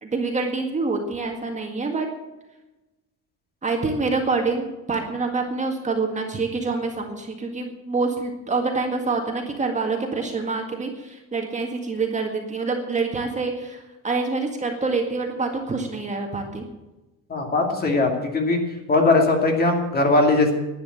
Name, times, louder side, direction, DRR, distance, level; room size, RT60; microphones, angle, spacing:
voice 1, 0.0-2.1 3.6-16.7, right 3 dB, 20° right, 2 dB, 1.9 m, -26 dB
voice 2, 17.3-18.6 18.9-20.5, left 2 dB, 30° left, 2 dB, 2.5 m, -19 dB
11.5 x 9.4 x 8.6 m, 1.0 s
cardioid pair, 150°, 32 cm